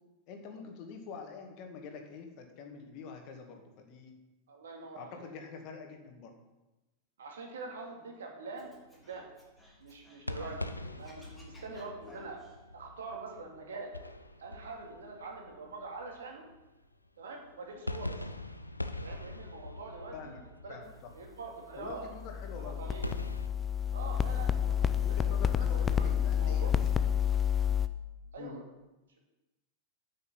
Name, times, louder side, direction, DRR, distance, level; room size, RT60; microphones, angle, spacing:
voice 1, 0.3-4.1 5.0-6.3 20.1-20.4 20.7-20.9 21.8-22.8 25.0-26.8 28.4-28.6, left 5 dB, 40° left, 3 dB, 2.1 m, -46 dB
voice 2, 4.5-5.3 7.2-9.3 9.8-12.4 12.7-13.9 14.4-16.5 17.2-18.2 19.0-20.4 20.6-20.8 21.1-22.1 22.6-23.1 23.9-26.8 28.3-28.6, right 3 dB, 65° right, 1 dB, 2.4 m, -44 dB
sound 1, 8.6-17.0 17.4-23.5, left 1 dB, 85° left, 0.6 m, -43 dB
Scratching (performance technique), 8.6-10.7 11.0-12.6, left 1 dB, ahead, 3.3 m, -58 dB
sound 2, 21.9-27.9, left 8 dB, 20° left, 0.6 m, -29 dB
9.8 x 6.5 x 7.4 m, 1.0 s
figure-of-eight pair, 90°, 0 cm